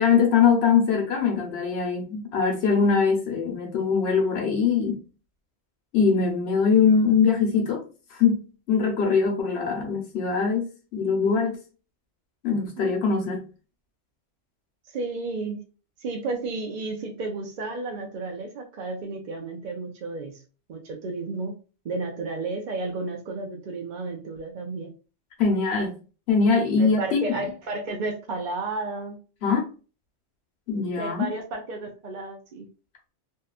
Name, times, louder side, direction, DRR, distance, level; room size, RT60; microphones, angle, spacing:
voice 1, 0.0-5.0 5.9-7.8 8.1-8.4 8.7-11.6 12.4-13.4 25.4-25.9 26.3-27.3 29.4-29.7 30.7-31.3, left 5 dB, 70° left, 1.0 m, -22 dB
voice 2, 14.9-15.6 16.0-20.4 20.7-21.5 21.8-24.9 26.8-29.2 31.0-32.7, right 3 dB, 55° right, 0.6 m, -32 dB
2.7 x 2.3 x 2.3 m
omnidirectional pair, 1.1 m